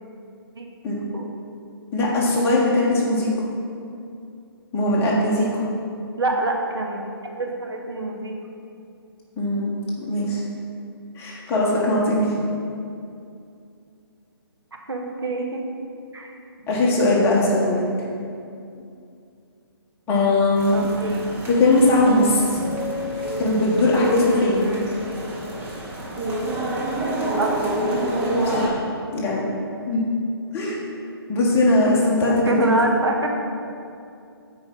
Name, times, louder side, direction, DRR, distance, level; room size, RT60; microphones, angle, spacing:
voice 1, 1.9-3.3 4.7-5.6 9.4-10.4 11.1-12.3 16.7-17.8 20.1-20.9 21.5-22.6 23.4-24.7 28.4-28.8 29.1-29.4 29.9-30.0 30.5-30.8 31.3-32.7, left 2 dB, 15° left, -5 dB, 1.5 m, -20 dB
voice 2, 6.2-7.0 7.4-8.4 14.9-15.6 16.1-16.3 20.7-21.3 24.6-24.9 27.4-27.5 31.8-33.4, right 2 dB, 75° right, 1 dB, 1.3 m, -26 dB
sound 1, 20.6-28.7, right 1 dB, 10° right, 1.0 m, -27 dB
8.6 x 4.8 x 5.4 m, 2.5 s
figure-of-eight pair, 140°, 13 cm